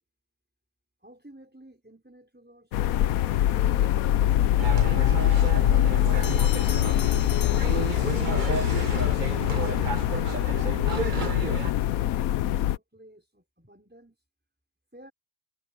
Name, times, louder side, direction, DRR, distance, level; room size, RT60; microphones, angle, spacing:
voice 1, 1.0-4.0 6.1-7.7 8.4-10.5 10.8-14.2 14.9-15.1, right 1 dB, 5° right, 5.5 m, -53 dB
sound 1, 2.7-12.8, left 12 dB, 85° left, 1.1 m, -23 dB
sound 2, 4.6-11.7, right 4 dB, 35° right, 1.2 m, -32 dB
Bell, 6.2-8.5, left 10 dB, 60° left, 1.0 m, -41 dB
omnidirectional pair, 1.4 m